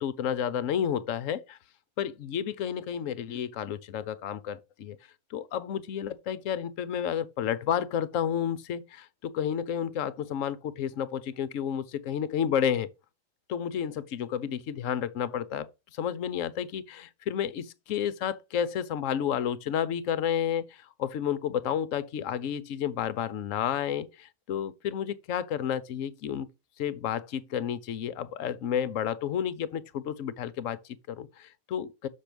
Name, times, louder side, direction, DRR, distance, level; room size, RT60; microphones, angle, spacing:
voice 1, 0.0-1.6 2.0-5.0 5.3-12.9 13.5-26.5 26.8-32.1, left 9 dB, 60° left, 0.9 m, -31 dB
6.9 x 6.0 x 5.0 m
omnidirectional pair, 1.9 m